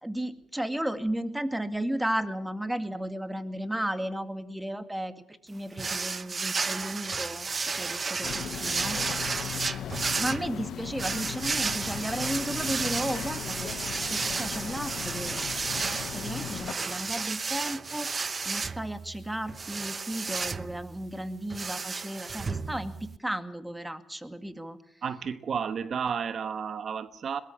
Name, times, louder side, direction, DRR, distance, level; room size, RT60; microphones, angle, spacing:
voice 1, 0.0-9.0 10.2-13.8 14.1-24.8, right 1 dB, 5° right, 10 dB, 2.1 m, -34 dB
sound 1, 5.8-23.2, right 4 dB, 35° right, 0.9 m, -33 dB
sound 2, 8.2-16.7, left 10 dB, 70° left, 1.0 m, -38 dB
voice 2, 25.0-27.4, right 6 dB, 55° right, 12 dB, 1.2 m, -32 dB
22.5 x 20.0 x 7.2 m, 0.74 s
cardioid pair, 90°, 0 cm